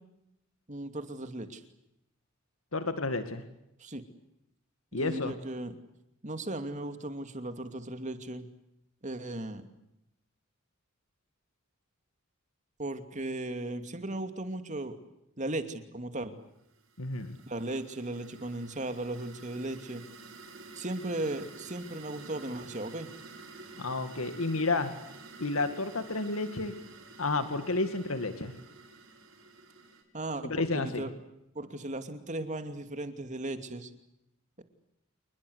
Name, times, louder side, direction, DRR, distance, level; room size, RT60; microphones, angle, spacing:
voice 1, 0.7-1.6 3.8-4.0 4.9-5.8 6.2-8.5 9.0-9.7 12.8-15.0 15.4-16.4 17.5-20.0 20.7-23.1 30.1-31.1 31.5-33.9 34.6-34.7, right 1 dB, 35° right, 8 dB, 2.7 m, -36 dB
voice 2, 2.7-3.4 4.9-5.3 17.0-17.4 23.8-24.9 25.4-26.7 27.2-28.6 30.4-31.1, left 3 dB, 90° left, 9 dB, 2.2 m, -31 dB
sound 1, 16.7-30.0, right 3 dB, 80° right, 6.8 m, -50 dB
28.0 x 21.0 x 8.2 m, 0.84 s
head